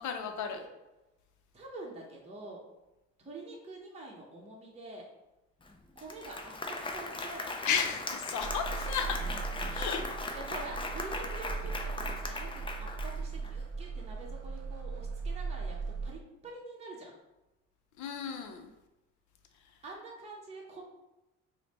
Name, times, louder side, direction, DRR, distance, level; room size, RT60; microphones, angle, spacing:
voice 1, 0.0-0.6 7.7-9.2 9.7-10.0 18.0-18.7, left 6 dB, 70° left, 5 dB, 0.5 m, -33 dB
voice 2, 1.5-2.6 3.2-5.1 6.0-6.5 6.9-7.5 10.3-15.8 16.0-17.1 19.8-20.8, right 2 dB, 20° right, -3 dB, 0.7 m, -46 dB
Applause, 5.6-5.7 6.0-13.5, left 2 dB, 15° left, 0.4 m, -39 dB
sound 1, 8.4-16.2, right 4 dB, 55° right, 0.5 m, -38 dB
3.2 x 2.1 x 4.0 m, 1.0 s
cardioid pair, 90°, 30 cm